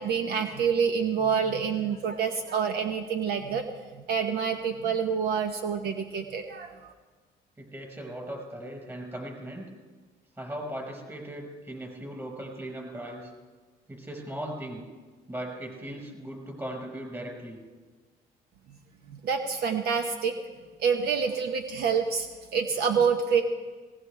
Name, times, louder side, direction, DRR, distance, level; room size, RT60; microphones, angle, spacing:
voice 1, 0.0-3.7 3.9-6.7 19.1-20.4 20.8-22.3 22.5-23.4, right 6 dB, 70° right, 5 dB, 1.0 m, -27 dB
voice 2, 7.6-9.7 10.4-13.3 13.9-14.8 15.3-17.6, right 1 dB, 15° right, 1 dB, 5.2 m, -38 dB
19.0 x 17.5 x 3.4 m, 1.4 s
cardioid pair, 110°, 17 cm